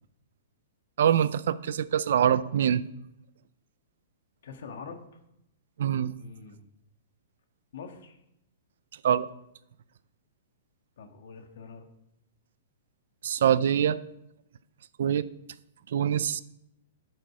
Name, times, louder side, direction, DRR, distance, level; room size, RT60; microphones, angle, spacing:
voice 1, 1.0-2.8 5.8-6.1 9.0-9.3 13.2-14.0 15.0-15.3 15.9-16.4, right 9 dB, 65° right, 16 dB, 0.5 m, -24 dB
voice 2, 4.4-5.2 6.2-6.6 7.7-8.2 11.0-11.9, left 5 dB, 65° left, 6 dB, 1.6 m, -44 dB
13.5 x 6.5 x 4.9 m, 0.82 s
hypercardioid pair, 165°, 0 cm